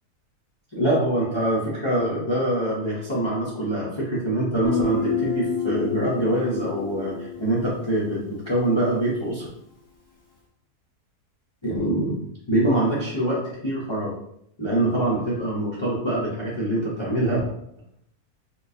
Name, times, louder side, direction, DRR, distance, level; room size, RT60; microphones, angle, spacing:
voice 1, 0.7-9.5 11.6-12.2 12.5-14.1 14.6-17.4, right 1 dB, 45° left, -7 dB, 0.3 m, -24 dB
Guitar, 4.6-8.3, left 5 dB, 15° left, 0.8 m, -28 dB
4.4 x 2.3 x 2.6 m, 0.74 s
omnidirectional pair, 1.7 m